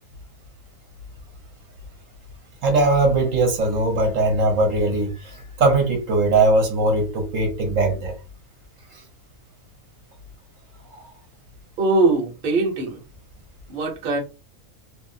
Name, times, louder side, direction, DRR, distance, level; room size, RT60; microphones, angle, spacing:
voice 1, 2.6-8.2 8.9-9.0 10.9-11.1, right 2 dB, 70° right, 1.1 m, -20 dB
voice 2, 11.8-13.0 13.7-14.2, right 3 dB, 45° right, 0.8 m, -21 dB
2.8 x 2.4 x 2.6 m
omnidirectional pair, 1.5 m